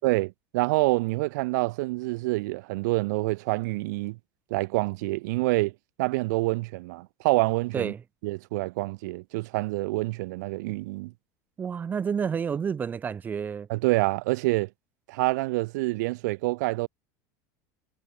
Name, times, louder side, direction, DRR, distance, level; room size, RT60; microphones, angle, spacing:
voice 1, 0.0-4.2 4.5-5.7 6.0-7.9 8.2-11.1 13.7-14.7 15.1-16.9, right 22 dB, 80° right, 0.5 m, -27 dB
voice 2, 11.6-13.7, right 7 dB, 20° right, 1.3 m, -29 dB
cardioid pair, 165°, 9 cm